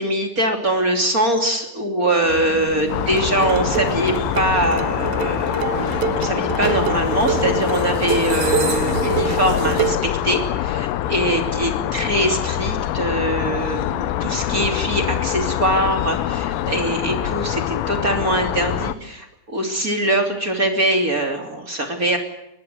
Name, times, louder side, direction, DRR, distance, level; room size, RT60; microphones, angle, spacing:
voice 1, 0.0-22.2, right 1 dB, 25° right, 4 dB, 2.2 m, -22 dB
sound 1, 2.2-9.9, right 6 dB, 45° right, 3.2 m, -31 dB
sound 2, 2.9-18.9, left 12 dB, 80° left, 3.4 m, -24 dB
sound 3, 3.2-10.1, right 9 dB, 85° right, 2.1 m, -27 dB
23.5 x 20.5 x 7.9 m, 0.92 s
omnidirectional pair, 5.8 m